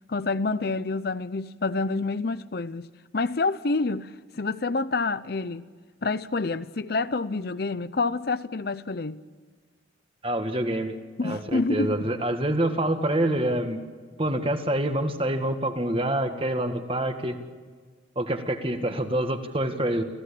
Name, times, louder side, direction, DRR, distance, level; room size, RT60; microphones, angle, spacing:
voice 1, 0.1-2.9 3.1-5.6 6.0-9.2 11.2-12.1, left 3 dB, 55° left, 0.7 m, -28 dB
voice 2, 10.2-11.0 11.2-13.8 14.2-17.4 18.2-20.0, right 1 dB, 30° right, 1.9 m, -26 dB
29.5 x 16.0 x 8.6 m
head